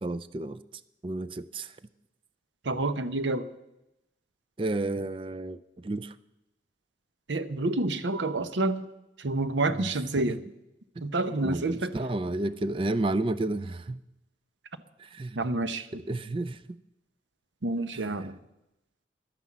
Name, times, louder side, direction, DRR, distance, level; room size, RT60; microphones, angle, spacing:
voice 1, 0.0-0.6 1.0-1.7 4.6-6.1 9.8-9.9 10.2-10.4 11.4-14.0 15.0-15.4 15.9-16.8 17.9-18.3, right 2 dB, 30° right, 13 dB, 0.4 m, -32 dB
voice 2, 2.6-3.5 7.3-8.8 9.2-10.4 11.0-11.9 15.4-15.9 17.6-18.3, right 2 dB, 80° right, 12 dB, 0.9 m, -28 dB
11.5 x 9.7 x 7.3 m, 0.91 s
head